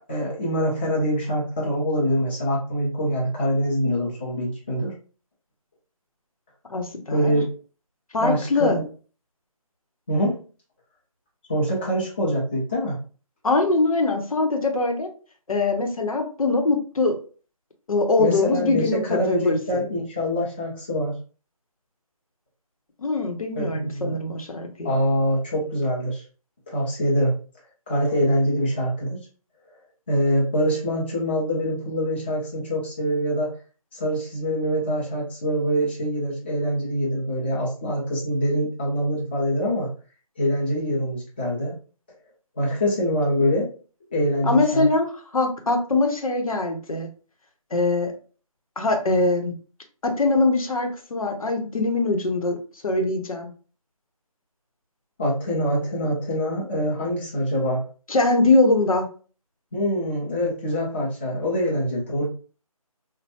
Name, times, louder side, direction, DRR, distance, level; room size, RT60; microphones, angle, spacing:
voice 1, 0.1-4.9 7.1-7.5 8.2-8.9 10.1-10.4 11.5-13.0 18.2-21.1 23.5-24.1 24.8-26.2 26.7-27.3 27.9-29.2 30.1-33.5 33.9-39.9 40.4-41.8 42.6-43.7 44.1-44.9 55.2-57.8 59.7-62.3, equal, 20° left, -5 dB, 0.5 m, -24 dB
voice 2, 6.7-7.3 8.1-8.8 13.4-15.1 15.5-17.2 17.9-19.6 23.0-24.9 44.4-47.1 47.7-48.1 48.8-49.5 50.0-52.6 52.8-53.5 58.1-59.1, left 2 dB, 70° left, 4 dB, 0.8 m, -22 dB
3.2 x 2.2 x 2.7 m, 0.39 s
figure-of-eight pair, 160°, 19 cm